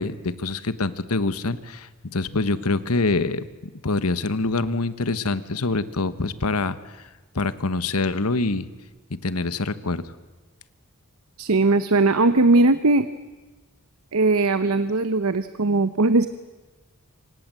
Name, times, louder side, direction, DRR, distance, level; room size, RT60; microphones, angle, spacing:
voice 1, 0.0-3.4 3.8-6.8 7.3-8.7 9.2-10.0, left 3 dB, 80° left, 13 dB, 1.3 m, -25 dB
voice 2, 11.4-13.1 14.1-16.3, right 2 dB, 70° right, 12 dB, 0.9 m, -19 dB
27.0 x 25.5 x 7.7 m, 1.2 s
head